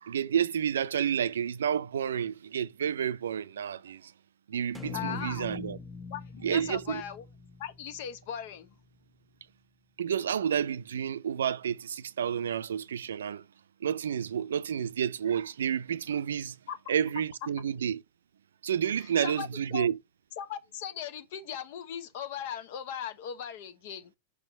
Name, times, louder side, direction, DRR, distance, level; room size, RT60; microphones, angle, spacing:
voice 1, 0.0-4.1 4.5-5.8 6.4-7.0 10.0-13.5 13.8-16.6 16.9-18.0 18.6-20.0, right 8 dB, 75° right, 0.5 m, -30 dB
sound 1, 4.7-9.0, left 4 dB, 10° left, 0.8 m, -43 dB
voice 2, 4.9-5.5 6.1-7.2 7.6-8.8 16.7-16.9 19.0-19.9 20.4-24.1, left 9 dB, 60° left, 1.1 m, -38 dB
5.0 x 4.4 x 5.4 m
hypercardioid pair, 100°, 0 cm